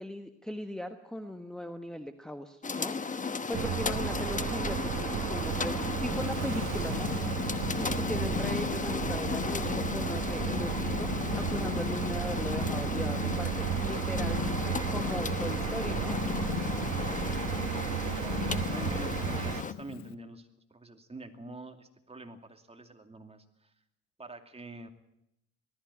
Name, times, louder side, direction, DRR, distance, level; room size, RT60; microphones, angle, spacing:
voice 1, 0.0-2.9 3.2-7.1 7.7-11.1 11.3-16.2, equal, ahead, 7 dB, 1.3 m, -39 dB
sound 1, 2.6-19.7, left 4 dB, 25° left, 1.1 m, -35 dB
sound 2, 3.5-19.6, right 11 dB, 70° right, 1.2 m, -34 dB
Purr, 5.4-20.1, left 10 dB, 65° left, 0.9 m, -38 dB
voice 2, 17.0-17.4 18.2-23.7 24.2-24.9, right 2 dB, 20° right, 5 dB, 2.5 m, -46 dB
19.0 x 14.0 x 9.8 m, 0.82 s
cardioid pair, 90°, 30 cm